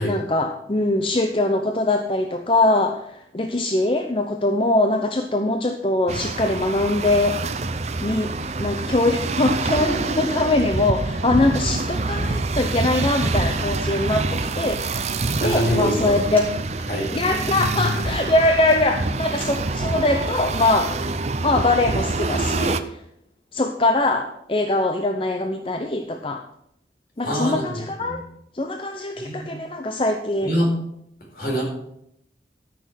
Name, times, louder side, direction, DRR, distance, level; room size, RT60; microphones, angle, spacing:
voice 1, 0.0-7.4 8.0-8.3 8.6-14.8 15.4-16.5 16.8-23.0 23.5-26.4 27.2-28.2 28.5-30.5, left 2 dB, 30° left, 5 dB, 0.7 m, -22 dB
sound 1, 6.1-22.8, right 3 dB, 35° right, 0.6 m, -26 dB
sound 2, 12.1-19.8, equal, 10° left, 3.4 m, -40 dB
voice 2, 15.4-16.3 16.9-17.1 17.5-17.9 27.2-28.2 29.2-29.5 30.4-30.7 31.3-31.6, equal, 55° left, -1 dB, 4.2 m, -24 dB
13.5 x 6.2 x 6.4 m, 0.77 s
head